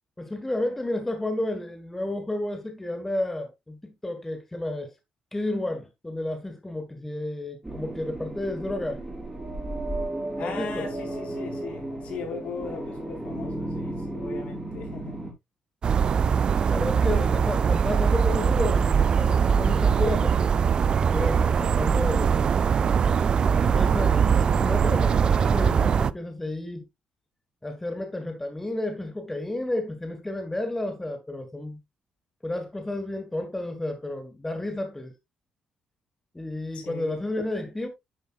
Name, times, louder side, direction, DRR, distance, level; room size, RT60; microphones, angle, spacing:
voice 1, 0.2-4.9 5.3-9.0 10.4-10.9 16.7-20.8 21.1-22.7 23.5-26.8 27.6-31.8 32.4-35.1 36.3-37.9, left 1 dB, 10° left, 1.5 m, -31 dB
sound 1, 7.6-15.3, right 1 dB, 10° right, 4.0 m, -34 dB
voice 2, 10.4-15.2 16.9-17.3 36.7-37.2, left 6 dB, 65° left, 4.2 m, -38 dB
sound 2, 15.8-26.1, right 6 dB, 40° right, 0.4 m, -22 dB
10.5 x 7.9 x 2.3 m
cardioid pair, 140°, 2 cm